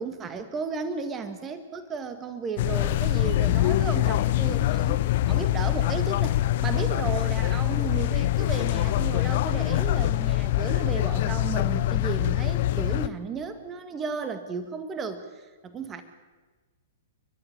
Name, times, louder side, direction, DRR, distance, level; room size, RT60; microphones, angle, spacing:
voice 1, 0.0-16.0, right 5 dB, 20° right, 9 dB, 1.8 m, -34 dB
sound 1, 2.6-13.1, left 15 dB, 50° left, 0.7 m, -24 dB
30.0 x 12.5 x 8.7 m, 1.3 s
figure-of-eight pair, 110°, 0 cm